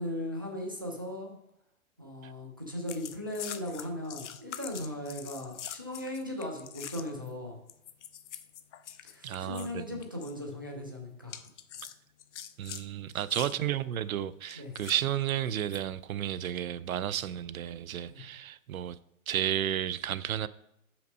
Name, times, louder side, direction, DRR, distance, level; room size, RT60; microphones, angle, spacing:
voice 1, 0.0-1.3 2.0-7.6 9.0-11.4 13.1-13.6 14.6-14.7 18.1-18.2, left 1 dB, 15° right, 0.3 m, -38 dB
sound 1, 2.9-7.3 7.7-9.7 10.0-10.3 11.3-12.8 13.3-13.6 14.5-15.8 16.4-16.6, left 9 dB, 55° left, 0.6 m, -44 dB
voice 2, 9.2-10.0 12.6-19.0 19.3-20.5, right 11 dB, 70° right, 0.5 m, -32 dB
5.8 x 5.1 x 5.3 m
hypercardioid pair, 150°, 43 cm